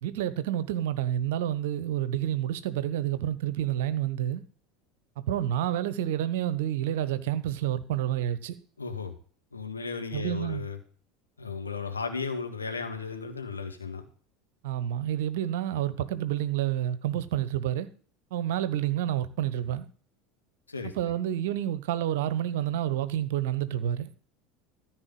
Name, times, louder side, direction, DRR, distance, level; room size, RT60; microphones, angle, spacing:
voice 1, 0.0-4.4 5.3-8.6 10.1-10.7 14.6-17.9 18.3-19.9 20.8-24.1, right 11 dB, 60° right, 1.0 m, -29 dB
voice 2, 8.8-9.2 9.5-10.8 11.4-14.0 20.7-21.2, left 5 dB, 80° left, 1.7 m, -35 dB
14.0 x 4.7 x 7.9 m
figure-of-eight pair, 75°, 0 cm